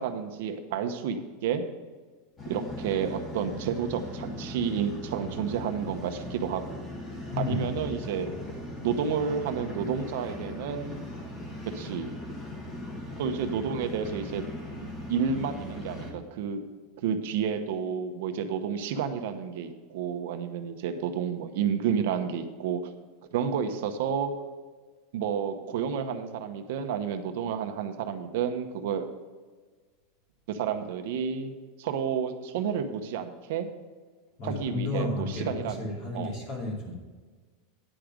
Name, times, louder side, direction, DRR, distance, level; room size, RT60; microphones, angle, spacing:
voice 1, 0.0-1.6 2.5-6.8 7.4-8.3 8.8-11.0 11.7-12.1 13.2-14.5 15.1-16.6 17.0-22.8 23.3-24.3 25.1-29.0 30.5-31.5 31.8-33.7 34.4-36.4, right 7 dB, 60° right, 7 dB, 0.9 m, -30 dB
sound 1, 2.4-16.1, left 1 dB, 20° left, 1.7 m, -39 dB
voice 2, 7.3-7.7 34.4-36.9, left 2 dB, 45° left, -3 dB, 2.8 m, -32 dB
10.0 x 5.1 x 6.1 m, 1.4 s
supercardioid pair, 165°, 0 cm